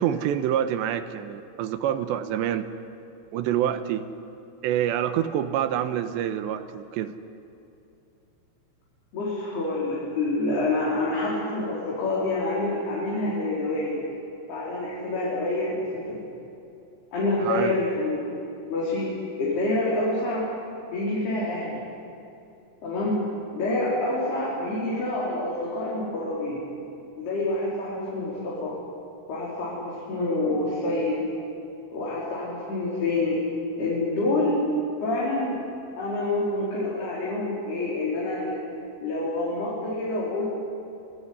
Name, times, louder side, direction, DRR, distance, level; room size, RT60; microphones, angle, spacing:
voice 1, 0.0-2.7 3.3-4.1 4.6-7.1 17.4-17.8, right 10 dB, 85° right, 9 dB, 3.3 m, -26 dB
voice 2, 9.1-14.0 14.5-16.3 17.1-18.2 18.7-19.1 19.4-20.5 20.9-21.8 22.8-23.2 23.5-26.6 27.2-28.8 29.3-31.2 31.9-33.4 33.8-34.6 35.0-35.6 36.0-38.6 39.0-40.6, left 2 dB, 65° left, -7 dB, 6.9 m, -27 dB
28.0 x 19.5 x 9.8 m, 2.8 s
omnidirectional pair, 5.1 m